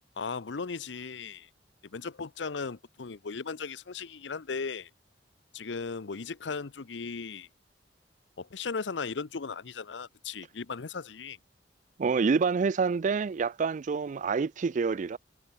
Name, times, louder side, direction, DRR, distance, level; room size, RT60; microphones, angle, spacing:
voice 1, 0.2-1.5 1.8-4.9 5.5-7.5 8.4-11.4, left 5 dB, 90° left, 0.7 m, -37 dB
voice 2, 12.0-15.2, right 5 dB, 45° right, 0.4 m, -27 dB
head